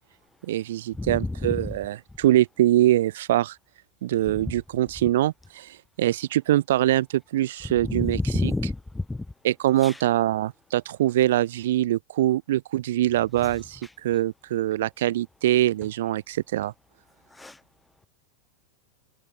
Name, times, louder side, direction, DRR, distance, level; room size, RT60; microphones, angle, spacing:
voice 1, 0.5-3.6 4.0-8.5 9.4-16.7, right 14 dB, 55° right, 0.9 m, -23 dB
voice 2, 1.0-1.7 7.8-9.2 9.8-10.0 17.4-17.6, left 2 dB, 5° left, 1.1 m, -29 dB
open air
figure-of-eight pair, 90°, 0 cm